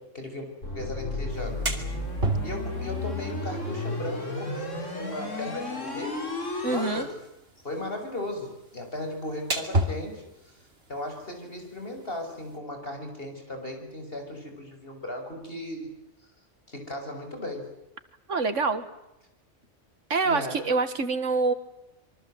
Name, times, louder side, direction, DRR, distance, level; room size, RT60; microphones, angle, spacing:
voice 1, 0.0-1.6 2.4-6.3 6.6-7.2 7.6-10.6 10.9-15.9 16.7-17.7 20.2-20.6, left 1 dB, 50° left, 4 dB, 6.7 m, -36 dB
sound 1, 0.6-7.0, left 2 dB, 85° left, 4.7 m, -33 dB
sound 2, 1.3-12.6, right 1 dB, 55° right, 3.0 m, -36 dB
voice 2, 6.6-7.1 18.3-18.8 20.1-21.5, right 4 dB, 80° right, 11 dB, 2.1 m, -25 dB
26.5 x 24.0 x 7.9 m, 0.89 s
omnidirectional pair, 1.3 m